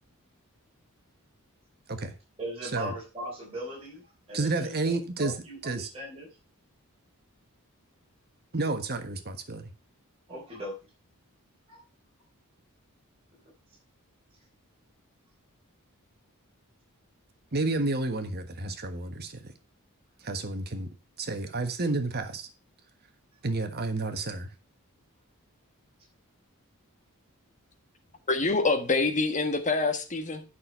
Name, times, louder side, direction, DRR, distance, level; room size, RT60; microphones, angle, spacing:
voice 1, 2.4-4.0 4.3-6.3 10.3-10.8 11.7-11.8, right 1 dB, 25° right, 3.8 m, -39 dB
voice 2, 4.3-5.3 5.6-5.9 8.5-9.7 17.5-19.5 20.2-20.9 21.2-22.5 23.4-24.5, right 2 dB, 45° right, 1.4 m, -30 dB
voice 3, 28.3-30.4, left 3 dB, 35° left, 1.5 m, -26 dB
8.8 x 6.4 x 5.6 m
head